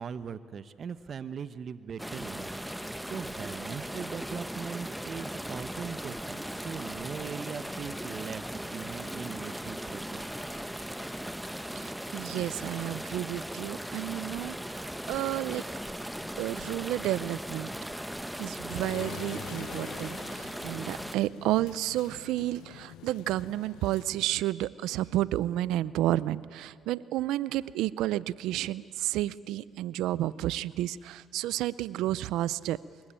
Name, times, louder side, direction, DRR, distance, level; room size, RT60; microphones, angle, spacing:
voice 1, 0.0-10.2, right 6 dB, 55° right, 13 dB, 1.0 m, -40 dB
sound 1, 2.0-21.2, equal, 5° right, 1.0 m, -38 dB
voice 2, 11.8-15.6 16.4-17.7 18.4-32.8, right 14 dB, 85° right, 19 dB, 0.6 m, -31 dB
sound 2, 18.7-24.1, left 12 dB, 85° left, 0.8 m, -46 dB
24.5 x 21.5 x 8.9 m, 2.3 s
supercardioid pair, 70°, 0 cm